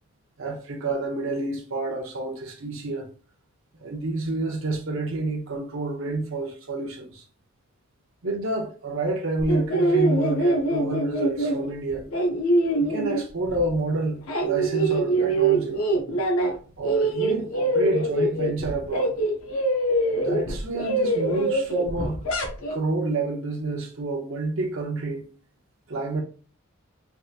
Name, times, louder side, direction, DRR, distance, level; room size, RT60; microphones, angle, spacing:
voice 1, 0.4-3.1 3.8-7.2 8.2-12.0 12.8-15.8 16.8-19.2 20.2-22.2 22.7-25.3 25.9-26.2, right 2 dB, 65° right, 0.6 m, -29 dB
sound 1, 9.4-13.8 14.1-16.6 16.8-22.8, right 2 dB, 85° left, 0.6 m, -24 dB
3.5 x 2.7 x 2.4 m
head